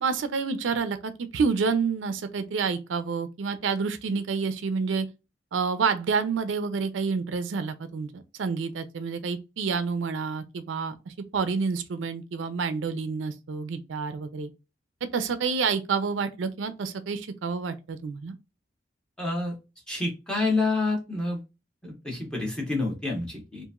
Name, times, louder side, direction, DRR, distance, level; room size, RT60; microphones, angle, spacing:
voice 1, 0.0-5.1 5.5-14.5 15.1-18.3, right 5 dB, 80° right, 0.4 m, -28 dB
voice 2, 19.2-19.6 19.9-21.4 21.8-23.6, left 2 dB, 5° left, 1.0 m, -28 dB
2.9 x 2.5 x 2.3 m
head